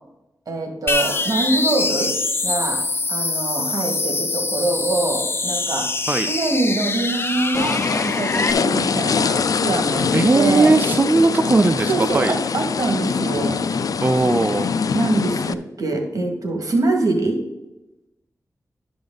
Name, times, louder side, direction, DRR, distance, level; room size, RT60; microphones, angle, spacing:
voice 1, 0.5-2.1 2.4-2.8 3.1-5.9 6.3-10.7 11.9-13.6 14.9-17.4, right 2 dB, 65° right, 2 dB, 2.0 m, -24 dB
sound 1, 0.9-8.5, left 3 dB, 35° left, 0.7 m, -24 dB
sound 2, 7.5-15.5, left 5 dB, 70° left, 0.3 m, -23 dB
voice 2, 9.9-12.4 14.0-14.7, right 3 dB, 30° right, 8 dB, 0.4 m, -18 dB
12.0 x 5.2 x 3.9 m, 0.96 s
wide cardioid pair, 85°, 6 cm